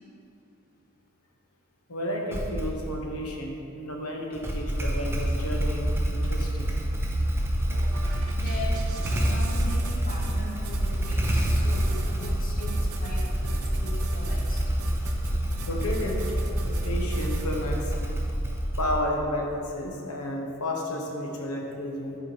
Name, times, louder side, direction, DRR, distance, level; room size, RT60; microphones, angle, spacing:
voice 1, 1.9-6.7 15.7-16.2 16.6-18.2 18.8-22.2, left 1 dB, 80° left, 0 dB, 1.0 m, -32 dB
Motorcycle / Engine starting, 2.3-3.0 4.3-19.2, equal, 10° right, 0.5 m, -27 dB
sound 1, 7.7-17.7, right 4 dB, 70° right, 0.6 m, -43 dB
voice 2, 8.3-14.6, left 1 dB, 40° left, -2 dB, 1.0 m, -40 dB
6.8 x 4.7 x 4.5 m, 2.6 s
head